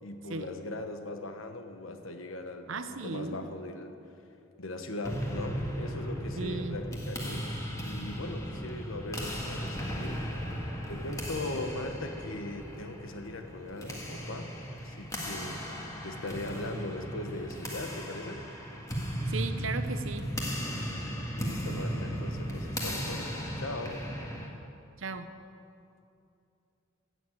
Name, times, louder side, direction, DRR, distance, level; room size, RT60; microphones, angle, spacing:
voice 1, 0.0-3.9 4.6-10.3 10.9-15.7 16.0-18.4 21.3-24.0, left 2 dB, 90° left, 6 dB, 1.2 m, -39 dB
voice 2, 2.7-3.4 6.4-6.8 19.3-20.3 25.0-25.3, right 4 dB, 80° right, 9 dB, 0.8 m, -36 dB
sound 1, 5.0-24.5, equal, 15° left, 1.7 m, -36 dB
15.5 x 7.2 x 8.7 m, 2.7 s
head